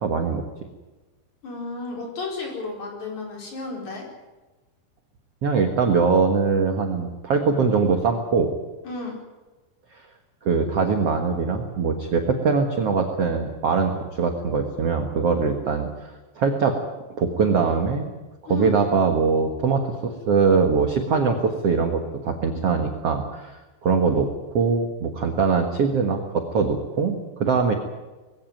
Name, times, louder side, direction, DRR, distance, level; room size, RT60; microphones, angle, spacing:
voice 1, 0.0-0.4 5.4-8.5 10.4-13.9 14.2-16.1 16.4-16.8 17.2-18.1 18.5-23.6 23.8-24.3 24.5-27.7, right 5 dB, 70° right, 4 dB, 1.4 m, -22 dB
voice 2, 1.4-4.0 8.8-9.1 18.5-18.7, left 3 dB, 40° left, 0 dB, 5.7 m, -33 dB
21.0 x 16.5 x 9.3 m, 1.2 s
omnidirectional pair, 5.3 m